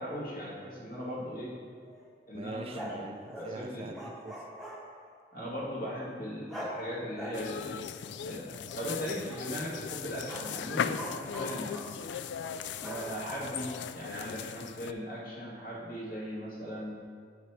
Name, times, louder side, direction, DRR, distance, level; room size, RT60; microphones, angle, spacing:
voice 1, 0.0-1.6 2.3-2.9 3.4-3.9 5.3-7.7 8.2-8.5 8.8-11.7 12.8-17.0, equal, 55° left, -5 dB, 2.1 m, -38 dB
sound 1, 1.2-2.1 2.7-5.1 6.5-6.8 7.2-9.5 10.1-13.8, equal, ahead, 1.0 m, -43 dB
voice 2, 2.3-4.5, right 2 dB, 35° right, 6 dB, 0.4 m, -43 dB
sound 2, 7.3-14.9, left 8 dB, 90° left, 0.3 m, -38 dB
8.1 x 5.8 x 4.5 m, 2.1 s
head